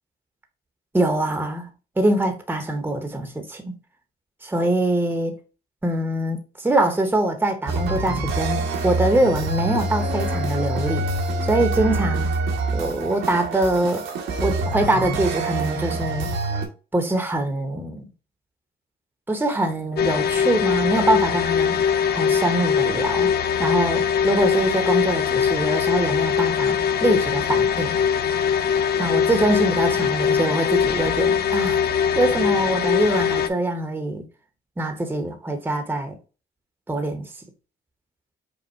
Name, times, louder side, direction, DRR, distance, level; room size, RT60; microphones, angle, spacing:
voice 1, 0.9-1.7 2.0-3.8 4.4-5.4 5.8-12.3 12.7-14.0 14.4-16.3 16.9-18.1 19.3-23.3 23.6-28.0 29.0-31.8 32.1-34.2 34.8-36.1 36.9-37.3, right 1 dB, 10° right, 0.9 m, -23 dB
sound 1, 7.7-16.7, right 2 dB, 80° right, 1.2 m, -26 dB
sound 2, 20.0-33.5, left 7 dB, 55° left, 0.5 m, -21 dB
5.3 x 2.2 x 4.3 m
cardioid pair, 90°, 20 cm